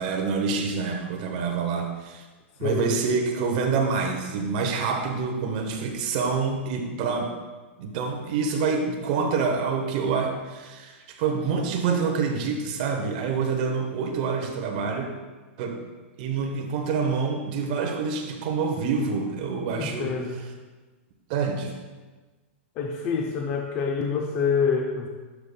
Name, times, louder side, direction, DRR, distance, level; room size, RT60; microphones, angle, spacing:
voice 1, 0.0-2.2 2.6-7.3 7.8-15.1 15.6-15.8 16.2-20.1 21.3-21.8, right 5 dB, 35° right, 3 dB, 0.8 m, -27 dB
voice 2, 2.6-2.9 19.7-20.4 22.8-25.1, left 5 dB, 25° left, 1 dB, 0.4 m, -26 dB
11.5 x 5.3 x 2.2 m, 1.3 s
supercardioid pair, 170°, 7 cm